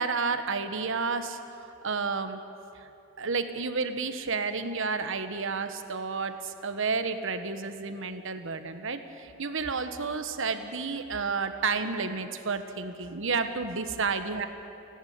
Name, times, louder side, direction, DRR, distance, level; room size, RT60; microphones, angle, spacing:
voice 1, 0.0-1.4 1.8-2.4 2.8-2.9 3.2-14.5, right 4 dB, 60° right, 9 dB, 1.3 m, -31 dB
30.0 x 11.0 x 9.5 m, 2.7 s
head